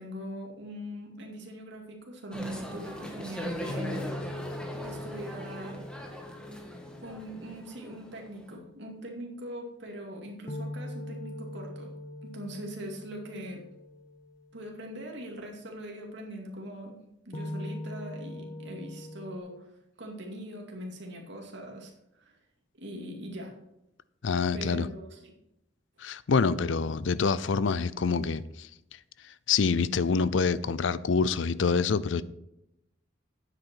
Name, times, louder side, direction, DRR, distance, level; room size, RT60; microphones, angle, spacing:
voice 1, 0.0-4.1 4.8-5.8 7.0-11.9 12.2-13.6 14.5-17.0 17.2-19.7 20.0-22.4 22.8-23.5 24.5-25.3, equal, 65° right, 2.4 m, -41 dB
sound 1, 2.3-8.5, equal, 5° left, 1.5 m, -40 dB
sound 2, 3.7-7.8 10.5-14.7 17.3-19.4, left 1 dB, 35° left, 1.1 m, -41 dB
voice 2, 24.2-24.9 26.0-28.7 29.5-32.2, left 5 dB, 70° left, 0.5 m, -26 dB
9.4 x 8.0 x 4.5 m
head